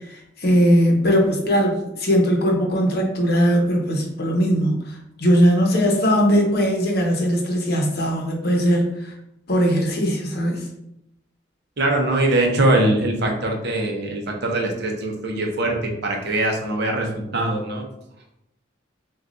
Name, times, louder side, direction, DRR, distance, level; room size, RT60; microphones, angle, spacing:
voice 1, 0.1-4.9 5.2-9.1 9.5-10.6, equal, 50° left, 1 dB, 0.8 m, -19 dB
voice 2, 11.8-17.9, right 1 dB, 55° right, 1 dB, 0.7 m, -22 dB
6.2 x 2.3 x 2.6 m, 0.82 s
head